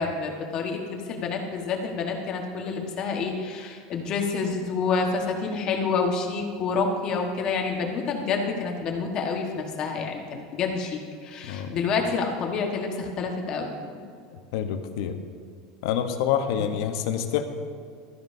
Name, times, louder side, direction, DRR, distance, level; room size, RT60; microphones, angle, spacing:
voice 1, 0.0-14.0 16.6-16.7, left 4 dB, 35° left, 2 dB, 1.4 m, -28 dB
voice 2, 11.5-11.8 14.5-15.2 15.8-17.5, left 9 dB, 70° left, 7 dB, 0.9 m, -27 dB
14.5 x 13.0 x 2.7 m, 2.2 s
supercardioid pair, 155°, 2 cm